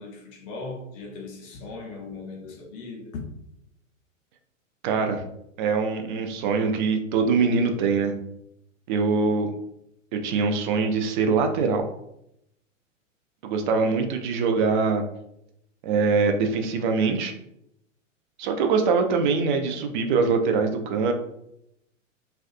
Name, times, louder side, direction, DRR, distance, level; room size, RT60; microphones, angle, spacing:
voice 1, 0.0-3.3, left 3 dB, 35° left, 0.5 m, -38 dB
voice 2, 4.8-5.2 5.6-8.1 8.9-9.5 10.1-11.9 13.4-15.0 15.8-17.3 18.4-21.1, right 4 dB, 40° right, 0.4 m, -23 dB
2.3 x 2.2 x 2.5 m
figure-of-eight pair, 100°, 39 cm